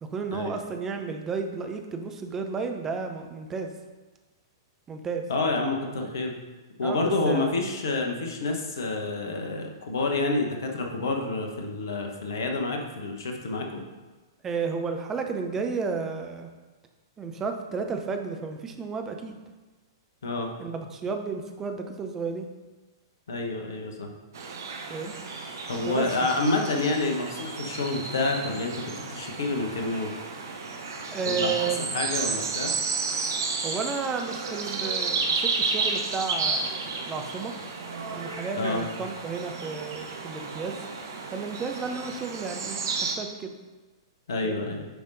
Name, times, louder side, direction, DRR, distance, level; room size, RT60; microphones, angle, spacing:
voice 1, 0.0-3.7 4.9-5.3 6.8-7.5 14.4-16.5 17.2-19.4 20.6-22.5 24.9-25.1 25.9-26.1 29.7-29.8 31.1-31.9 33.6-37.5 38.1-40.8 41.3-43.5 44.4-44.6, right 5 dB, 15° right, 5 dB, 0.6 m, -32 dB
voice 2, 5.3-6.4 6.8-13.8 20.2-20.5 23.3-24.1 25.7-30.1 31.3-31.7 31.9-32.7 38.6-38.8 44.3-44.9, left 3 dB, 60° left, 2 dB, 1.1 m, -28 dB
sound 1, 24.3-43.2, right 4 dB, 55° right, 0.8 m, -32 dB
9.3 x 5.3 x 2.6 m, 1.2 s
figure-of-eight pair, 110°, 2 cm